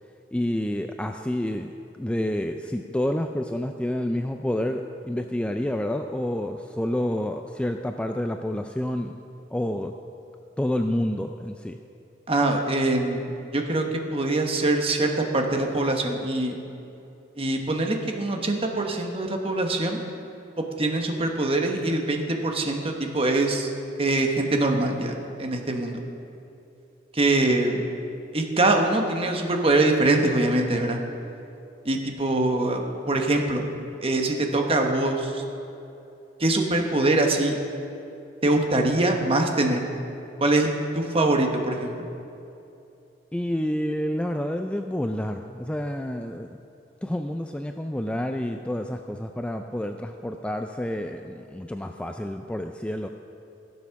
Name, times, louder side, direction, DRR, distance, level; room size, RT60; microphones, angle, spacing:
voice 1, 0.3-1.7 2.0-9.2 9.5-9.9 10.6-11.8 43.3-46.6 47.0-53.1, left 1 dB, 5° left, 5 dB, 0.3 m, -29 dB
voice 2, 12.3-13.8 14.1-16.5 17.4-20.0 20.6-23.7 24.0-26.0 27.1-27.8 28.3-31.0 31.8-33.7 34.0-35.4 36.4-37.5 38.4-39.8 40.4-41.9, right 2 dB, 30° right, 3 dB, 1.1 m, -23 dB
15.5 x 7.4 x 5.8 m, 2.8 s
head